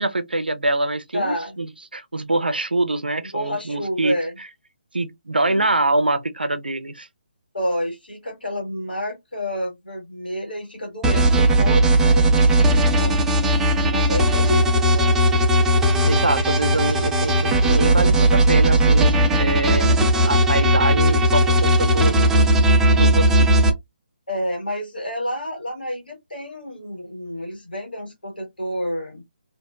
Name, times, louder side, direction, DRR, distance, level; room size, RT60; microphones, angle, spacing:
voice 1, 0.0-4.2 4.9-7.1 16.0-19.9 20.3-23.5, right 2 dB, 85° right, 0.5 m, -24 dB
voice 2, 1.1-1.6 3.3-4.3 5.5-5.8 7.5-13.2 13.9-15.6 24.3-29.2, equal, 80° left, 1.3 m, -29 dB
sound 1, 11.0-23.7, right 1 dB, 5° right, 0.3 m, -17 dB
2.5 x 2.1 x 2.3 m
figure-of-eight pair, 145°, 5 cm